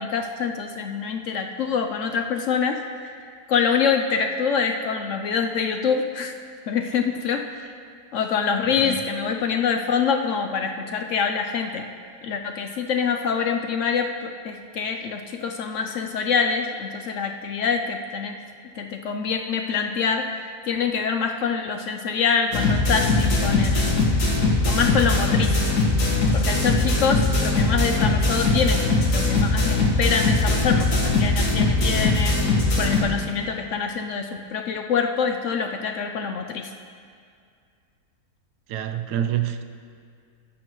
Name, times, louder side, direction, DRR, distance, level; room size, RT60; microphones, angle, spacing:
voice 1, 0.0-6.3 6.7-7.7 8.1-11.8 12.2-18.4 18.8-24.0 24.6-25.6 26.3-32.4 32.8-36.7, left 6 dB, 65° left, 5 dB, 0.8 m, -25 dB
sound 1, 22.5-33.0, left 2 dB, 80° left, 2.1 m, -21 dB
voice 2, 38.7-39.6, right 10 dB, 90° right, 8 dB, 1.2 m, -26 dB
18.5 x 8.6 x 3.1 m, 2.2 s
omnidirectional pair, 1.7 m